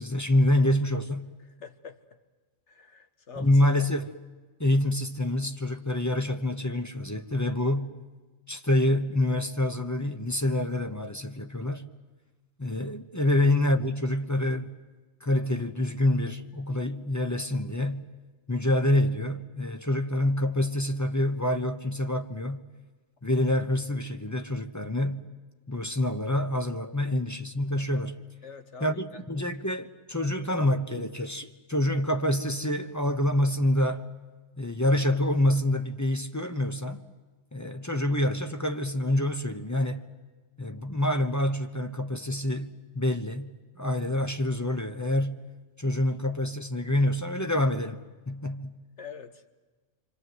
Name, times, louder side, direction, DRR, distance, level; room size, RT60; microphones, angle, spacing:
voice 1, 0.0-1.3 3.4-4.1 4.6-7.9 8.5-11.9 12.6-14.7 15.2-18.0 18.5-22.6 23.2-25.2 25.7-28.2 28.8-34.0 34.6-37.0 37.5-40.1 40.6-45.4 45.8-48.0 48.3-48.8, left 1 dB, 15° left, 1.0 m, -27 dB
voice 2, 1.5-2.0 2.7-3.6 13.2-13.5 28.4-29.2 49.0-49.5, left 6 dB, 70° left, 1.6 m, -45 dB
26.5 x 25.5 x 8.0 m
omnidirectional pair, 1.3 m